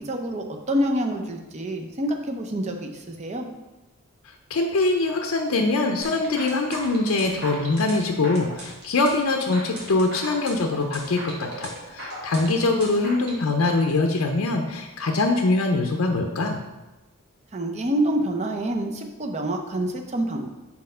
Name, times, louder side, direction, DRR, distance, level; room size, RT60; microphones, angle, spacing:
voice 1, 0.0-3.5 17.5-20.5, right 1 dB, 30° right, 3 dB, 0.5 m, -27 dB
voice 2, 4.5-16.6, left 2 dB, 70° left, 3 dB, 0.5 m, -23 dB
sound 1, 6.0-13.4, right 1 dB, 50° right, 1.5 m, -38 dB
4.3 x 4.2 x 5.4 m, 1.1 s
head